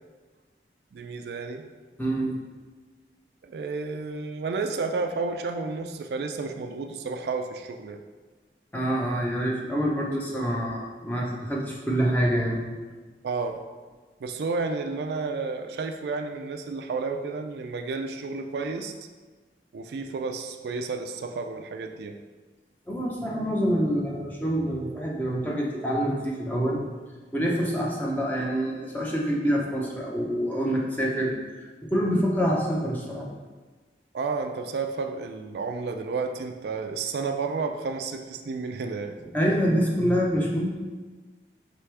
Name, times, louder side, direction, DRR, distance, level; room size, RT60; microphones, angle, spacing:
voice 1, 0.9-1.6 3.4-8.0 13.2-13.6 14.2-18.9 19.7-22.2 34.1-39.2, right 4 dB, 70° right, 5 dB, 0.3 m, -31 dB
voice 2, 2.0-2.3 8.7-12.6 22.9-26.8 27.3-33.3 39.3-40.7, equal, 10° left, -3 dB, 0.6 m, -26 dB
4.8 x 3.3 x 3.3 m, 1.3 s
head